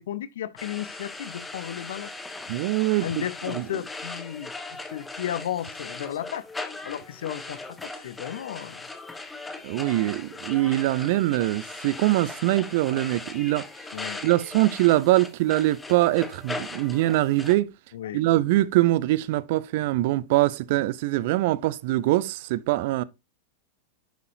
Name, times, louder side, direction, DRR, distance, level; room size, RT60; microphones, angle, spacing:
voice 1, 0.0-2.1 3.0-6.5 6.8-8.9 13.9-14.2 17.9-18.2, left 11 dB, 60° left, 0.8 m, -34 dB
sound 1, 0.6-17.5, left 3 dB, 10° left, 1.2 m, -39 dB
voice 2, 2.5-3.1 3.5-3.6 9.6-13.6 14.2-17.7 18.1-23.0, right 17 dB, 50° right, 0.5 m, -23 dB
10.5 x 6.7 x 2.7 m
figure-of-eight pair, 90°, 0 cm